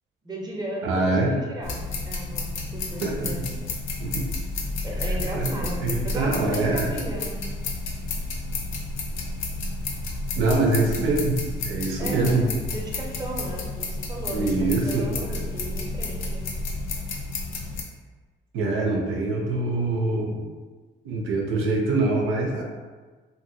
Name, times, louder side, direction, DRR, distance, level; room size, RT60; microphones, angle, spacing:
voice 1, 0.2-3.7 4.8-7.4 12.0-16.5, right 1 dB, 20° right, -2 dB, 0.7 m, -35 dB
voice 2, 0.8-1.4 3.0-3.3 4.0-4.2 5.1-5.5 5.8-6.9 10.4-12.5 14.3-15.4 18.5-20.4 21.0-22.6, right 2 dB, 85° right, -1 dB, 0.6 m, -24 dB
sound 1, 1.6-17.8, left 3 dB, 80° left, 0.5 m, -31 dB
2.8 x 2.6 x 2.6 m, 1.4 s
cardioid pair, 90°, 20 cm